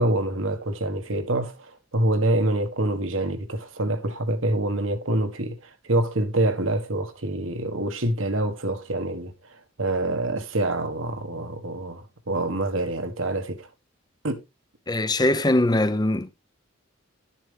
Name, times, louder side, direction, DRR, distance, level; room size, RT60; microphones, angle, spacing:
voice 1, 0.0-9.3 9.8-13.7 14.2-14.4, right 1 dB, 75° right, 1.5 m, -26 dB
voice 2, 14.9-16.3, left 1 dB, 20° left, 0.7 m, -21 dB
12.0 x 7.3 x 3.4 m
head